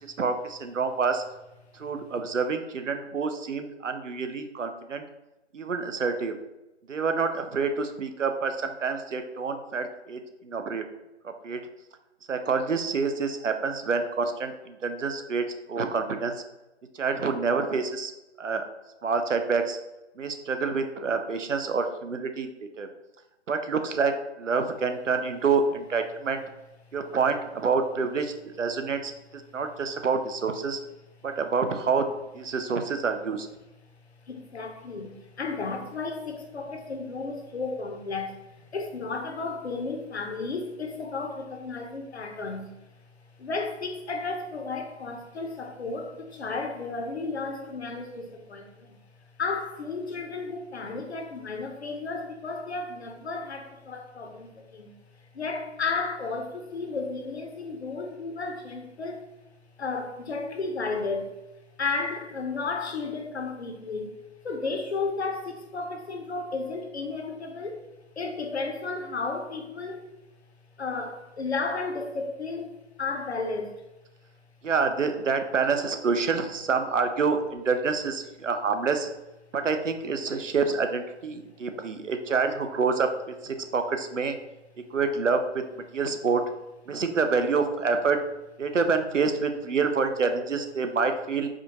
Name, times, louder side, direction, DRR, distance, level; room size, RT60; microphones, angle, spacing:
voice 1, 0.2-1.2 1.7-5.0 5.5-6.4 6.9-10.8 11.2-11.6 12.3-16.4 16.9-18.1 18.4-18.6 19.0-19.8 20.2-22.5 22.8-22.9 23.5-26.4 26.9-30.8 31.2-32.1 32.3-33.5 74.6-79.1 79.5-84.4 84.9-85.6 85.9-86.4 86.9-88.2 88.6-91.5, right 4 dB, 90° right, 0.6 m, -27 dB
voice 2, 34.2-42.7 43.4-49.0 49.4-54.9 55.3-59.3 59.8-61.4 61.8-64.1 64.4-67.9 68.2-70.0 70.8-73.8, left 3 dB, 60° left, 0.7 m, -33 dB
4.8 x 2.3 x 2.9 m
figure-of-eight pair, 150°, 36 cm